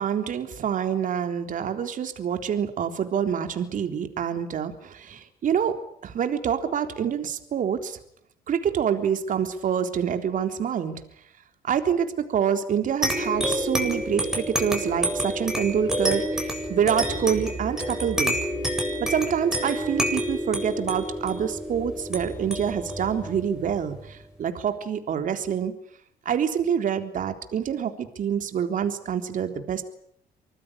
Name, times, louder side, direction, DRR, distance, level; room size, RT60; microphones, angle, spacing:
voice 1, 0.0-5.8 6.0-8.0 8.5-11.0 11.6-18.3 19.0-25.7 26.3-29.8, right 8 dB, 50° right, 7 dB, 3.7 m, -26 dB
sound 1, 13.0-24.1, equal, 5° right, 7.7 m, -28 dB
25.0 x 19.5 x 10.0 m, 0.69 s
cardioid pair, 110°, 17 cm